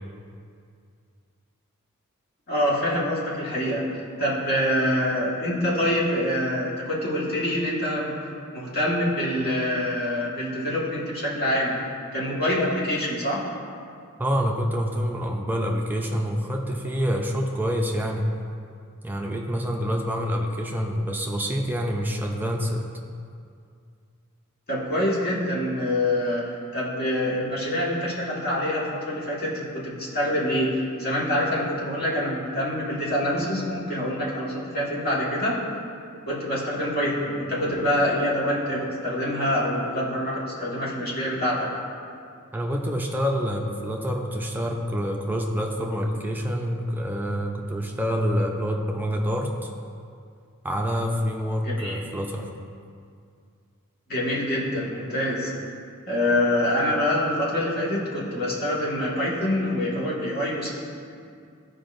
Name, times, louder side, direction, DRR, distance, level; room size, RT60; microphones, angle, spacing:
voice 1, 2.5-8.1 8.5-11.8 12.1-13.5 24.7-35.6 36.3-41.7 51.6-52.0 54.1-55.5 56.1-60.7, left 1 dB, 45° left, -6 dB, 1.7 m, -25 dB
voice 2, 14.2-18.3 19.0-22.9 42.5-49.7 50.6-52.5, equal, 10° right, 1 dB, 0.5 m, -27 dB
13.5 x 5.0 x 2.6 m, 2.3 s
head